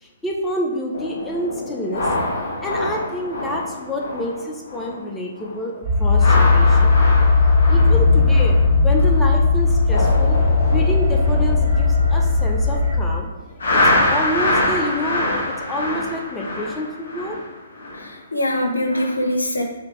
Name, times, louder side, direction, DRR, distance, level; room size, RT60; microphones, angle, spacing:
voice 1, 0.0-2.1 2.6-7.0 7.7-8.6 8.8-10.4 10.7-13.3 13.7-17.4, left 1 dB, 10° left, -2 dB, 0.6 m, -28 dB
sound 1, 0.9-5.1 5.4-5.7 6.1-9.3 9.6-12.9 13.6-18.1 18.5-18.7, left 1 dB, 65° left, 1.4 m, -25 dB
sound 2, 5.8-13.0, left 4 dB, 40° right, 1.3 m, -16 dB
voice 2, 17.9-19.6, left 1 dB, 85° left, 2 dB, 0.7 m, -23 dB
4.1 x 2.8 x 3.1 m, 1.2 s
figure-of-eight pair, 130°, 0 cm